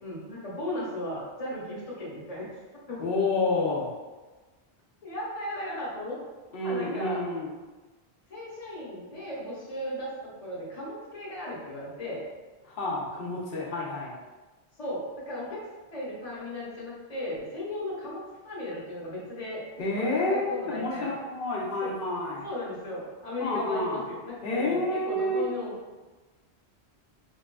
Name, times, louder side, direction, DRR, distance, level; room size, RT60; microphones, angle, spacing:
voice 1, 0.0-2.5 2.9-3.0 5.0-6.2 6.6-7.2 8.3-12.2 14.8-15.6 15.9-19.6 20.0-21.1 21.8-21.9 22.4-25.8, left 1 dB, 35° left, -6 dB, 1.1 m, -36 dB
voice 2, 3.0-3.9 6.5-7.5 12.7-14.2 19.8-22.5 23.4-24.0 24.4-25.4, left 2 dB, 60° left, -4 dB, 0.9 m, -29 dB
4.6 x 2.4 x 2.2 m, 1.2 s
omnidirectional pair, 1.1 m